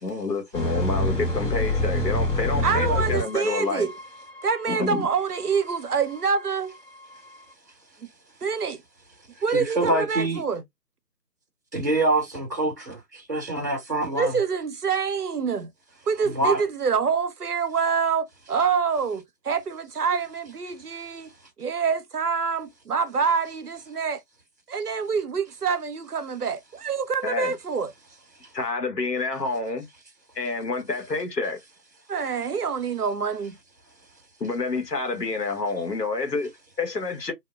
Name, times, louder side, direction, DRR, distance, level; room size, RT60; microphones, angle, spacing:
voice 1, 0.0-3.9 4.7-5.1 27.2-27.5 28.5-29.9 30.4-31.6 34.4-37.3, left 3 dB, 70° left, 1.1 m, -28 dB
sound 1, 0.5-6.8 7.0-7.3, left 1 dB, 30° left, 1.4 m, -28 dB
voice 2, 2.6-3.9 4.4-6.8 8.4-8.8 9.4-10.6 14.1-15.7 16.1-21.3 21.6-24.2 24.7-27.9 32.1-33.6, right 6 dB, 65° right, 0.6 m, -26 dB
voice 3, 9.5-10.4 11.7-14.4 16.3-16.6, right 2 dB, 25° right, 0.9 m, -25 dB
2.7 x 2.1 x 2.2 m
figure-of-eight pair, 160°, 50 cm